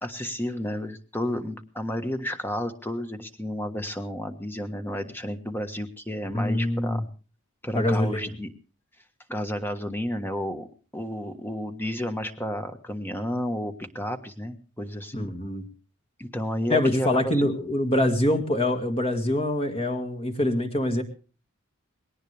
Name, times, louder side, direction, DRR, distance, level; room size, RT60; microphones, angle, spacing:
voice 1, 0.0-7.0 7.6-8.5 9.3-10.7 10.9-15.3 16.2-17.5, equal, 10° left, 7 dB, 1.4 m, -31 dB
voice 2, 6.3-7.0 7.7-8.3 15.1-15.7 16.7-21.0, left 1 dB, 25° left, 5 dB, 1.9 m, -24 dB
20.5 x 18.0 x 3.4 m, 0.37 s
head